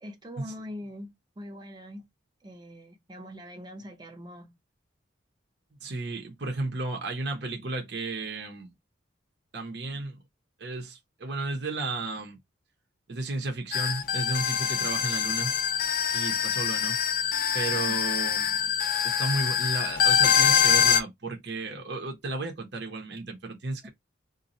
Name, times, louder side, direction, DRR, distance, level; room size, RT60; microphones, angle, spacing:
voice 1, 0.0-2.1 2.4-4.5 17.8-18.0 18.6-18.7 23.8-23.9, equal, 20° right, 0.7 m, -43 dB
voice 2, 5.8-8.7 9.5-10.2 10.6-12.4 13.1-15.5 16.1-17.0 17.5-18.5 19.0-23.9, right 3 dB, 60° right, 0.8 m, -33 dB
sound 1, 13.7-21.0, left 8 dB, 45° left, 0.4 m, -24 dB
2.6 x 2.3 x 4.1 m
head